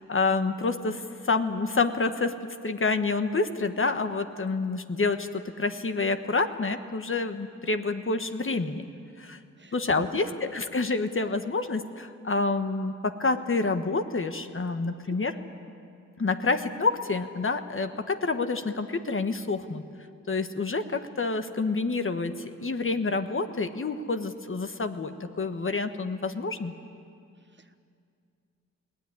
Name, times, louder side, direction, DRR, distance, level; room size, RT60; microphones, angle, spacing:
voice 1, 0.1-2.4 2.6-8.8 9.2-9.4 9.7-15.3 16.2-19.8 20.3-22.3 22.6-26.7, left 3 dB, 40° left, 8 dB, 1.3 m, -28 dB
voice 2, 9.6-10.3 27.5-27.8, right 3 dB, 35° right, 9 dB, 1.2 m, -47 dB
21.5 x 17.0 x 9.6 m, 2.4 s
cardioid pair, 55°, 31 cm